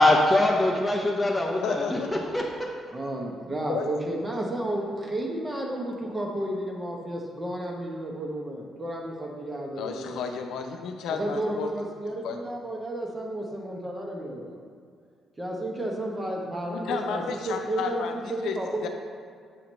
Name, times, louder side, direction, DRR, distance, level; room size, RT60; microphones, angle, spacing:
voice 1, 0.0-2.4, left 1 dB, 5° left, -2 dB, 0.7 m, -22 dB
voice 2, 1.6-2.2 3.7-3.9 9.8-11.7 12.2-12.4 16.7-18.6 18.8-18.9, left 6 dB, 80° left, 5 dB, 0.6 m, -32 dB
voice 3, 2.9-10.2 11.1-14.6 15.4-18.9, right 1 dB, 20° right, -1 dB, 1.1 m, -32 dB
7.5 x 2.9 x 5.3 m, 2.2 s
cardioid pair, 90°, 0 cm